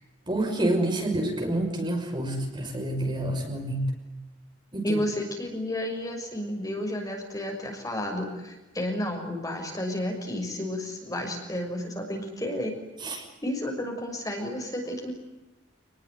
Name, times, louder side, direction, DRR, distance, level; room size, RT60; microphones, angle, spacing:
voice 1, 0.3-3.9 4.7-5.0 13.0-13.2, right 1 dB, 25° right, 2 dB, 5.9 m, -28 dB
voice 2, 4.8-12.8 13.4-15.1, left 1 dB, 20° left, 2 dB, 6.4 m, -31 dB
29.5 x 20.5 x 9.6 m, 1.1 s
head